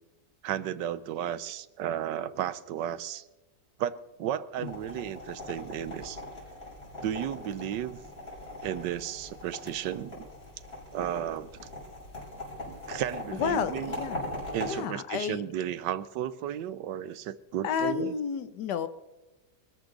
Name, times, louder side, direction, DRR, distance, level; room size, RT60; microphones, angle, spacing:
voice 1, 0.4-3.2 3.8-6.2 7.0-8.0 8.6-10.3 10.9-11.5 12.7-14.0 14.5-18.1, right 10 dB, 85° right, 1.4 m, -34 dB
sound 1, 4.6-14.7, left 1 dB, 35° left, 6.4 m, -41 dB
voice 2, 13.3-14.2 14.7-15.4 17.6-18.9, left 7 dB, 75° left, 1.5 m, -31 dB
23.5 x 14.0 x 3.9 m
omnidirectional pair, 1.8 m